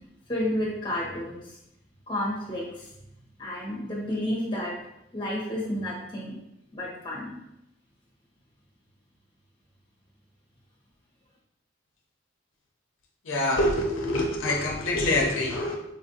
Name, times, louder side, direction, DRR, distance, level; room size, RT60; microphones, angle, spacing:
voice 1, 0.3-1.6 2.1-2.9 3.4-4.8 5.1-6.4 6.7-7.4, left 1 dB, 25° left, -4 dB, 1.0 m, -31 dB
voice 2, 13.2-15.8, left 1 dB, 80° left, 0 dB, 0.6 m, -25 dB
4.2 x 2.5 x 2.7 m, 0.85 s
head